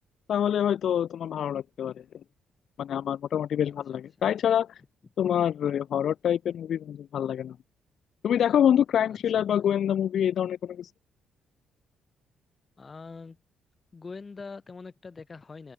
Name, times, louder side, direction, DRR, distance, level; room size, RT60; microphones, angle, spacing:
voice 1, 0.3-2.0 2.8-4.8 5.2-7.6 8.2-10.9, left 9 dB, 65° left, 0.4 m, -26 dB
voice 2, 3.6-4.0 9.1-9.4 12.8-13.4 13.9-15.7, left 4 dB, 30° left, 2.6 m, -44 dB
cardioid pair, 90°, 0 cm